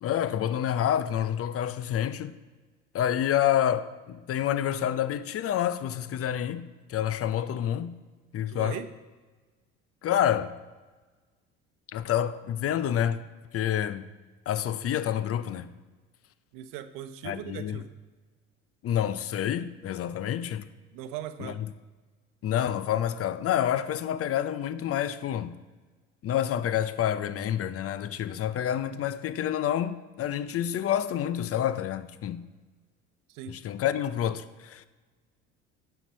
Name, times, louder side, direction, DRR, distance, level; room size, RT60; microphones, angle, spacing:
voice 1, 0.0-2.4 2.9-8.0 8.3-8.8 10.0-10.5 11.9-13.2 13.5-14.1 14.5-15.7 17.2-17.8 18.8-20.7 21.4-21.7 22.4-25.6 26.2-32.5 33.5-34.8, left 10 dB, 40° left, 0.6 m, -28 dB
voice 2, 8.5-8.9 16.5-17.9 20.9-21.6 33.3-33.6, right 10 dB, 65° right, 0.8 m, -39 dB
11.0 x 4.6 x 5.5 m
hypercardioid pair, 75°, 35 cm